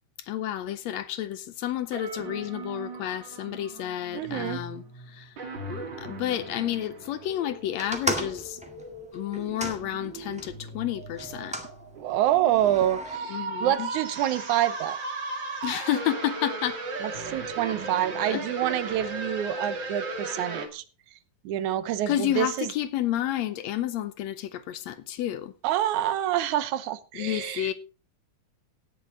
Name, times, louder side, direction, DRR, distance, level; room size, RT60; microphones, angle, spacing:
voice 1, 0.2-5.3 5.7-8.6 9.1-11.6 13.2-13.9 15.6-16.8 18.3-18.5 18.9-19.0 22.1-25.5 27.1-27.7, left 12 dB, 75° left, 1.8 m, -30 dB
sound 1, 1.9-20.7, right 3 dB, 40° right, 2.6 m, -37 dB
voice 2, 4.1-4.6 12.0-15.0 17.0-20.8 21.4-22.7 25.6-27.7, right 12 dB, 85° right, 2.2 m, -27 dB
sound 2, 7.8-10.5 11.2-11.7 12.5-13.2, right 1 dB, 5° right, 0.9 m, -34 dB
17.5 x 7.0 x 3.8 m
omnidirectional pair, 3.4 m